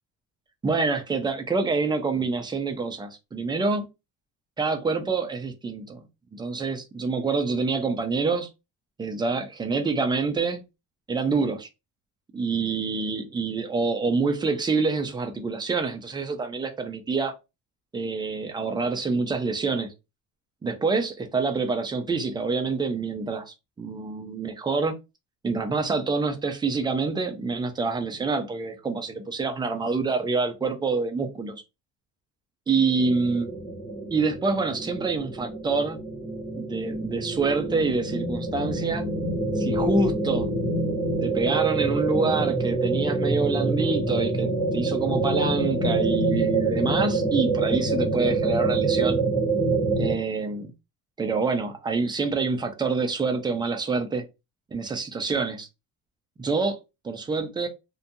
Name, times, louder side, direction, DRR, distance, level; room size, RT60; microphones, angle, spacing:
voice 1, 0.6-3.9 4.6-6.0 6.3-8.5 9.0-10.6 11.1-11.7 12.3-17.3 17.9-19.9 20.6-24.9 25.4-31.6 32.7-33.5 34.1-36.0 36.6-39.1 39.6-40.5 41.2-49.2 50.0-50.7 51.2-54.2 54.7-55.7 56.4-56.8 57.0-57.7, right 4 dB, 15° right, 0.3 m, -26 dB
sound 1, 33.0-50.2, right 3 dB, 15° left, 1.1 m, -26 dB
2.5 x 2.2 x 2.6 m
cardioid pair, 140°, 32 cm